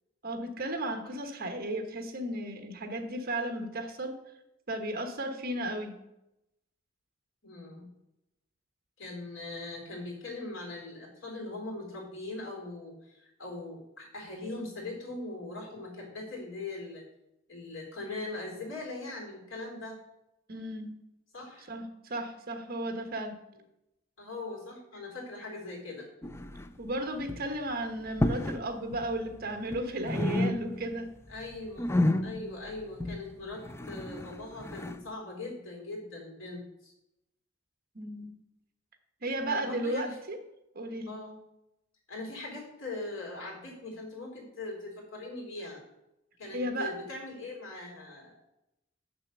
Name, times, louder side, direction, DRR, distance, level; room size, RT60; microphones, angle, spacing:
voice 1, 0.2-4.2 4.7-6.0 20.5-20.9 21.7-23.3 26.8-31.1 37.9-38.3 39.2-40.4 40.7-41.2 46.5-46.9, right 1 dB, 50° right, 6 dB, 1.3 m, -34 dB
voice 2, 7.4-7.9 9.0-17.0 17.5-20.0 21.3-21.7 24.2-26.1 31.3-31.9 32.2-36.9 39.5-40.2 41.1-41.4 42.1-45.8 46.4-48.3, left 2 dB, 75° left, -1 dB, 3.9 m, -40 dB
sound 1, 26.2-26.9 27.2-27.5 28.1-28.7 28.9-29.8 30.0-31.0 31.3-35.0, left 1 dB, 15° left, 0.4 m, -31 dB
7.0 x 6.8 x 6.7 m, 0.88 s
head